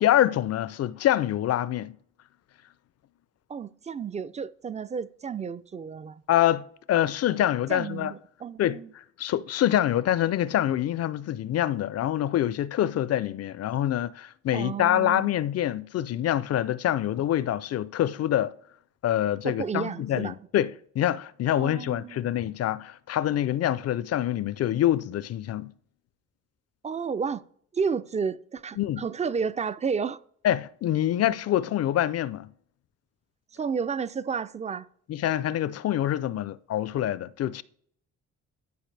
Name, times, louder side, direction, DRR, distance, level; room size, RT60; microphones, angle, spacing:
voice 1, 0.0-2.0 6.3-8.1 8.6-18.5 19.0-25.7 28.8-29.0 30.4-32.5 35.1-37.6, left 12 dB, 55° left, 0.5 m, -26 dB
voice 2, 3.5-6.2 7.7-8.9 14.5-15.3 19.4-20.4 21.6-22.2 26.8-27.4 27.7-30.2 33.5-34.9, right 6 dB, 25° right, 0.4 m, -31 dB
12.0 x 4.6 x 3.3 m
cardioid pair, 90°, 30 cm